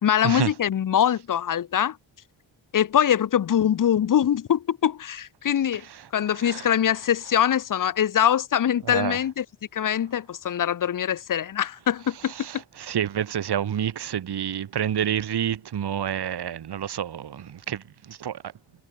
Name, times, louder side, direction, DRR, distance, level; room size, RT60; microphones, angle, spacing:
voice 1, 0.0-2.0 2.7-5.8 6.1-9.5 9.7-12.5, left 9 dB, 45° left, 0.6 m, -23 dB
voice 2, 8.9-9.2 12.4-18.4, right 9 dB, 60° right, 1.1 m, -28 dB
wide cardioid pair, 125°, 45 cm